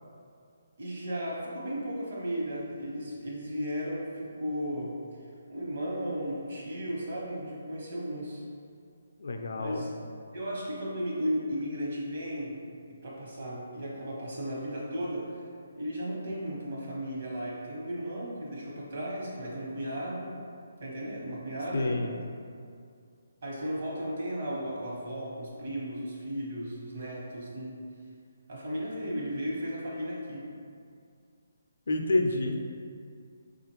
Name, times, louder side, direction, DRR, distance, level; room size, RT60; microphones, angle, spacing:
voice 1, 0.8-5.0 5.5-8.4 9.5-9.9 10.3-12.6 12.9-15.4 15.7-20.3 20.8-22.0 23.4-27.9 28.5-30.5, equal, 60° right, -5 dB, 1.1 m, -35 dB
voice 2, 9.2-9.8 21.7-22.2 31.9-32.6, left 2 dB, 75° left, 3 dB, 0.4 m, -28 dB
4.8 x 2.4 x 2.9 m, 2.3 s
hypercardioid pair, 165°, 0 cm